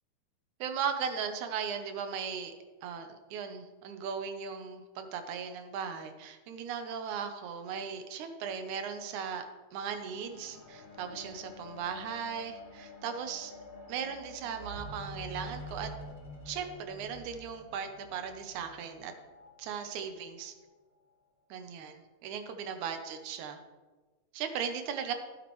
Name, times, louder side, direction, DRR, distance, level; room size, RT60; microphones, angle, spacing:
voice 1, 0.6-2.5 2.8-9.5 9.7-13.5 13.9-15.9 16.5-19.1 19.6-20.5 21.5-23.6 24.3-25.1, right 7 dB, 70° right, 7 dB, 2.2 m, -37 dB
sound 1, 10.0-19.5 20.3-20.4, left 1 dB, 40° left, 0.8 m, -48 dB
12.5 x 9.3 x 3.1 m, 1.3 s
omnidirectional pair, 3.8 m